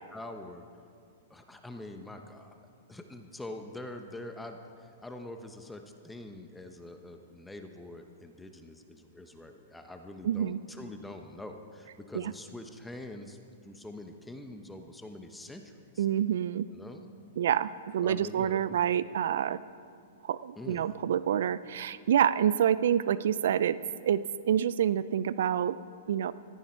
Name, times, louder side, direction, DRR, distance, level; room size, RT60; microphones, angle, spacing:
voice 1, 0.1-0.6 1.3-2.5 2.9-13.4 13.6-16.1 16.7-17.1 18.0-18.8 20.6-20.9, left 1 dB, 5° left, 5 dB, 0.9 m, -44 dB
voice 2, 10.2-10.6 12.1-12.2 16.0-16.7 17.4-19.6 20.2-24.2 24.5-25.8 26.1-26.3, right 9 dB, 70° right, 17 dB, 0.4 m, -27 dB
15.0 x 14.5 x 4.5 m, 2.3 s
hypercardioid pair, 125°, 0 cm